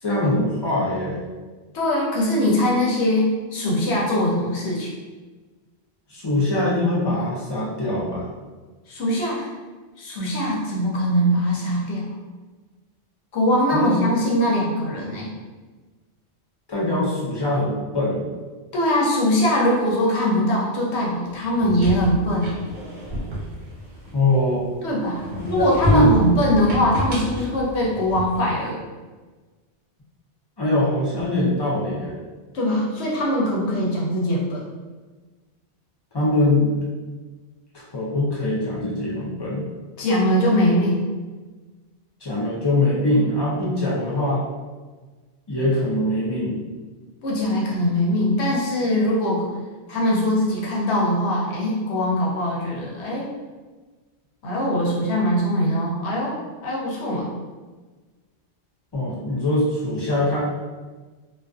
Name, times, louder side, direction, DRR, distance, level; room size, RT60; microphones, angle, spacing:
voice 1, 0.0-1.2 6.1-8.3 13.7-13.9 16.7-18.3 24.1-24.7 25.3-26.2 30.6-32.2 36.1-36.8 37.7-39.7 42.2-44.5 45.5-46.6 58.9-60.4, left 1 dB, 40° left, -6 dB, 0.3 m, -22 dB
voice 2, 1.7-4.9 8.9-9.5 10.0-12.1 13.3-15.3 18.7-22.5 24.8-28.8 32.5-34.6 40.0-41.1 47.2-49.5 49.9-53.3 54.4-56.3 56.6-57.3, equal, 75° left, -3 dB, 0.9 m, -22 dB
sound 1, 21.4-24.7 25.2-28.5, equal, 50° right, 0.8 m, -28 dB
2.4 x 2.2 x 2.3 m, 1.3 s
omnidirectional pair, 1.1 m